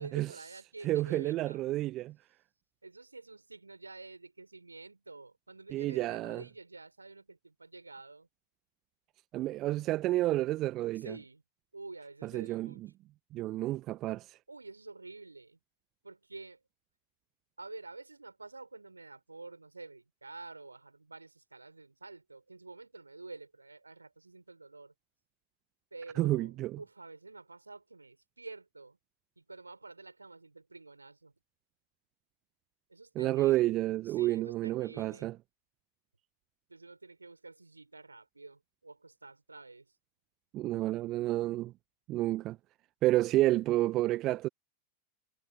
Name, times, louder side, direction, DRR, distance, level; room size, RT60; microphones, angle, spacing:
voice 1, 0.0-1.6 2.8-8.3 11.0-11.4 11.7-12.8 14.5-15.6 16.0-16.6 17.6-24.9 25.9-29.0 29.4-31.3 32.9-33.8 34.0-35.3 36.7-40.0, right 3 dB, 80° right, 5.3 m, -49 dB
voice 2, 0.8-2.1 5.7-6.4 9.3-11.1 12.3-12.9 13.3-14.4 26.2-26.8 33.2-35.3 40.5-41.7 42.1-42.6 43.0-44.5, right 16 dB, 35° right, 0.8 m, -30 dB
figure-of-eight pair, 90°, 0 cm